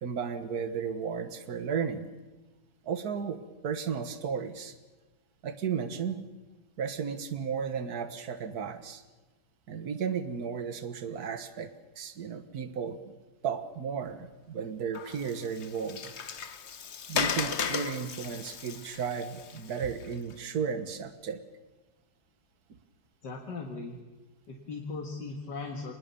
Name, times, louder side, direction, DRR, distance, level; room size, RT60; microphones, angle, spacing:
voice 1, 0.0-2.1 2.8-4.7 5.4-6.2 6.8-9.0 9.7-11.7 12.0-13.1 13.4-16.1 17.1-21.4, right 6 dB, 60° right, 10 dB, 1.9 m, -34 dB
Water, 14.9-20.3, left 6 dB, 45° left, 1.1 m, -36 dB
voice 2, 23.2-24.0 24.5-25.9, left 3 dB, 75° left, 1 dB, 2.5 m, -38 dB
26.0 x 20.0 x 7.1 m, 1.2 s
omnidirectional pair, 1.9 m